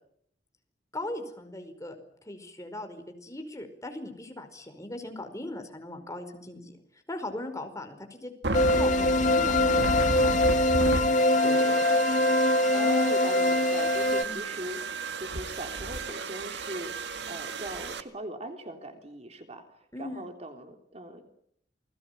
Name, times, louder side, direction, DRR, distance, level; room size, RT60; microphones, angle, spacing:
voice 1, 0.9-2.0 2.2-6.8 7.1-8.3 8.7-10.3 11.4-11.9 14.2-14.5 19.9-20.3, left 1 dB, 20° left, 6 dB, 5.1 m, -39 dB
sound 1, 8.4-18.0, right 3 dB, 75° right, 1.9 m, -34 dB
sound 2, 8.5-14.2, left 1 dB, 45° left, 1.9 m, -23 dB
voice 2, 12.7-19.6 20.0-21.3, right 1 dB, 40° right, 5 dB, 3.6 m, -40 dB
29.0 x 21.0 x 9.4 m, 0.69 s
head